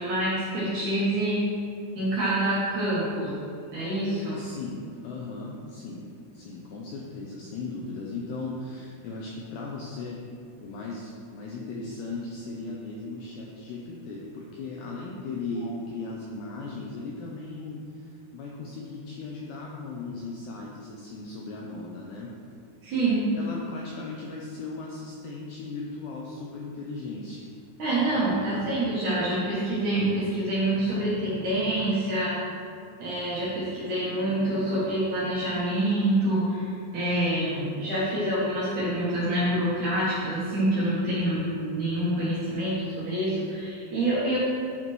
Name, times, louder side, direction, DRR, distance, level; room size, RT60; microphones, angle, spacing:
voice 1, 0.0-1.4 2.0-3.3 3.7-4.4 22.8-23.3 27.8-32.3 33.0-44.4, right 1 dB, 60° right, -10 dB, 2.3 m, -26 dB
voice 2, 4.3-6.0 6.3-10.2 10.6-22.3 23.3-27.5, left 3 dB, 80° left, -3 dB, 2.4 m, -37 dB
11.5 x 4.2 x 4.6 m, 2.3 s
omnidirectional pair, 5.5 m